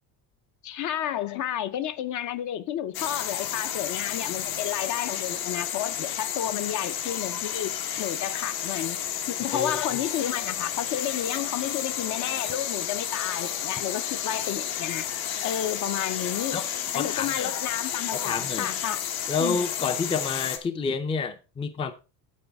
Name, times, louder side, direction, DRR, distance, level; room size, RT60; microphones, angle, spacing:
voice 1, 0.6-9.0 9.3-15.1 15.4-16.6 16.9-19.0 19.4-19.6, left 11 dB, 50° left, 0.7 m, -31 dB
sound 1, 2.9-20.6, left 9 dB, 65° left, 1.4 m, -31 dB
sound 2, 8.2-19.7, left 11 dB, 85° left, 2.0 m, -50 dB
voice 2, 16.9-17.5 18.1-18.7 19.3-21.9, left 5 dB, 15° left, 0.5 m, -29 dB
9.5 x 7.9 x 3.5 m
cardioid pair, 150°, 38 cm